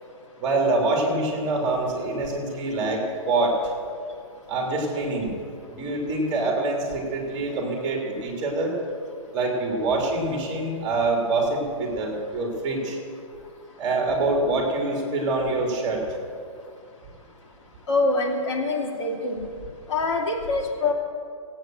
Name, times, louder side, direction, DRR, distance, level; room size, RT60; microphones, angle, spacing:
voice 1, 0.4-3.5 4.5-5.3 5.7-8.7 9.3-13.0 13.8-16.0, right 2 dB, 25° right, 1 dB, 3.2 m, -25 dB
voice 2, 17.9-19.5 19.9-20.9, left 3 dB, 55° left, -1 dB, 3.0 m, -24 dB
16.5 x 9.1 x 7.9 m, 2.3 s
hypercardioid pair, 155°, 17 cm